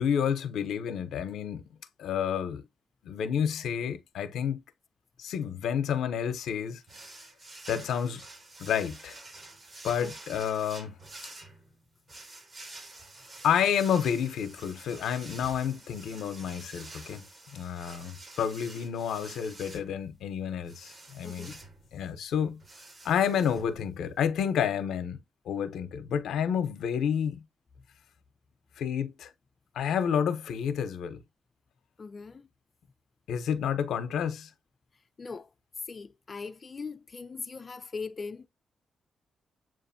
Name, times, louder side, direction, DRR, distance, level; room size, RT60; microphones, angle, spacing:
voice 1, 0.0-1.6 2.0-2.7 3.0-4.6 5.2-6.8 7.7-8.2 8.6-9.2 9.8-10.9 13.4-17.2 17.5-21.5 21.9-22.6 23.0-25.2 25.5-27.4 28.8-29.3 29.8-31.2 33.3-34.5, left 8 dB, 90° left, 0.6 m, -30 dB
sound 1, 6.9-24.3, right 2 dB, 40° right, 1.7 m, -49 dB
voice 2, 21.2-21.5 32.0-32.5 35.2-35.5 35.9-38.5, left 4 dB, 40° left, 0.4 m, -40 dB
7.4 x 2.5 x 2.6 m
cardioid pair, 80°, 0 cm